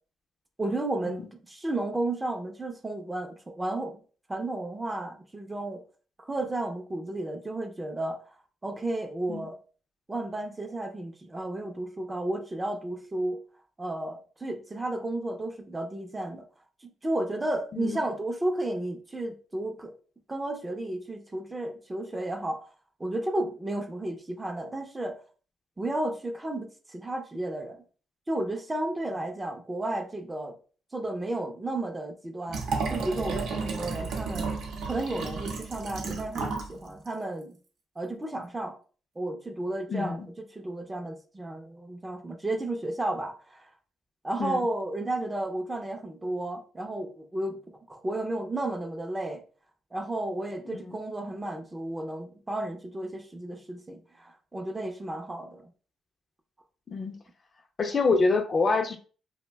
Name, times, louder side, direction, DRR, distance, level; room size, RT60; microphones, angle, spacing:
voice 1, 0.6-1.2 1.5-4.0 4.3-5.8 6.2-8.2 8.6-9.6 10.1-13.4 13.8-16.5 16.8-19.9 20.3-22.6 23.0-25.2 25.8-27.8 28.3-30.5 30.9-32.6 32.9-34.5 34.8-37.6 38.0-38.8 39.2-43.7 44.2-49.4 49.9-55.7, right 1 dB, 20° right, 5 dB, 0.5 m, -33 dB
Liquid, 32.5-36.7 37.1-37.2, right 4 dB, 80° right, 0.6 m, -32 dB
voice 2, 39.9-40.3 44.4-44.7 50.7-51.0 56.9-57.2 57.8-59.0, left 3 dB, 40° left, 5 dB, 0.4 m, -26 dB
2.5 x 2.1 x 3.3 m, 0.39 s
cardioid pair, 90°, 0 cm